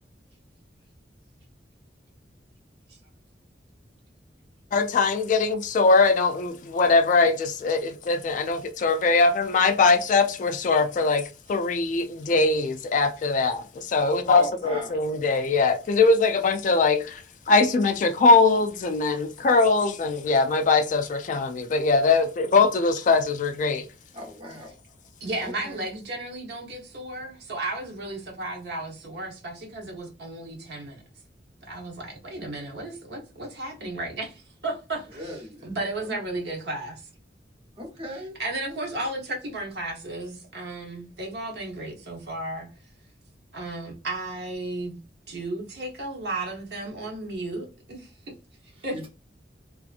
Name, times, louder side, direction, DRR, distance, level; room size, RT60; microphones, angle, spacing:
voice 1, 4.7-23.9, left 3 dB, 45° left, 0.3 m, -21 dB
voice 2, 14.3-14.9 24.1-24.7 25.6-25.7 35.2-35.6 37.8-38.4 48.9-49.1, equal, 30° right, 0.9 m, -37 dB
voice 3, 25.2-31.0 31.7-37.0 38.1-42.7 43.5-45.0 45.3-48.1 48.8-49.0, right 2 dB, 65° right, 0.9 m, -34 dB
2.7 x 2.4 x 2.4 m
head